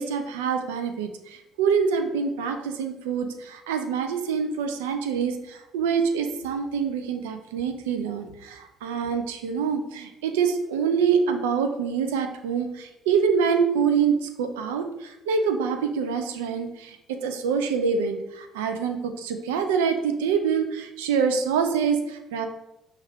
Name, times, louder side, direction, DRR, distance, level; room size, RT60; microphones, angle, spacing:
voice 1, 0.0-22.5, right 6 dB, 80° right, 7 dB, 0.4 m, -26 dB
5.4 x 2.4 x 3.5 m, 0.89 s
hypercardioid pair, 55°, 0 cm